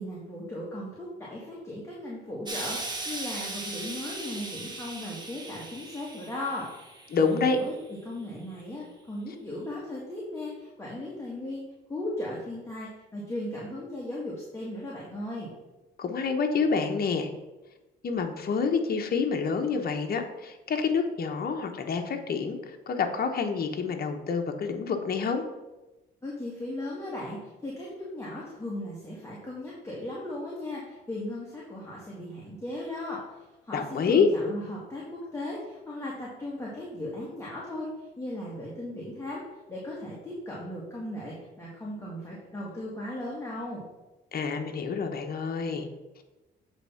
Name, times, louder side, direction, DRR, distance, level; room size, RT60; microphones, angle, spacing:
voice 1, 0.0-6.7 7.1-11.6 11.9-15.5 26.2-39.4 39.7-43.8, left 1 dB, 15° left, -6 dB, 1.9 m, -37 dB
Explosion, 2.5-7.8 8.6-8.7, right 2 dB, 20° right, 1.4 m, -38 dB
voice 2, 7.1-7.6 16.0-17.3 18.0-25.4 33.7-34.3 44.3-45.9, left 5 dB, 50° left, 4 dB, 1.0 m, -27 dB
8.0 x 3.5 x 5.7 m, 1.1 s
cardioid pair, 90°, 20 cm